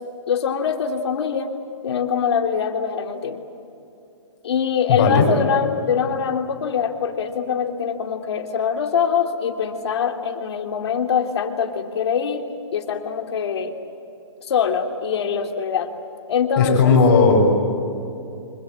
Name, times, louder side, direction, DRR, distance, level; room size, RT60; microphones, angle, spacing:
voice 1, 0.3-1.5 1.8-3.4 4.4-12.4 12.7-13.7 14.4-15.9 16.3-16.9, left 7 dB, 60° left, 5 dB, 2.8 m, -23 dB
voice 2, 4.9-5.3 16.6-17.5, left 4 dB, 40° left, 1 dB, 6.2 m, -15 dB
29.5 x 25.5 x 7.9 m, 2.8 s
hypercardioid pair, 160°, 16 cm